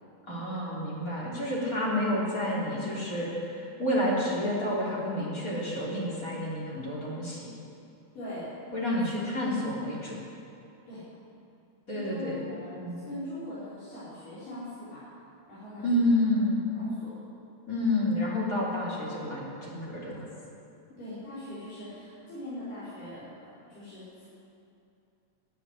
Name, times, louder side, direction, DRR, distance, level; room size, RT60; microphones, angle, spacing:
voice 1, 0.3-7.5 8.7-10.2 11.9-12.4 12.8-13.0 15.8-16.6 17.7-20.3, left 1 dB, 25° left, -6 dB, 3.6 m, -29 dB
voice 2, 8.1-8.5 10.9-11.1 11.9-15.1 15.5-16.0 16.8-17.1 21.0-24.3, left 1 dB, 80° left, -13 dB, 6.6 m, -41 dB
12.5 x 11.5 x 9.8 m, 2.6 s
omnidirectional pair, 3.7 m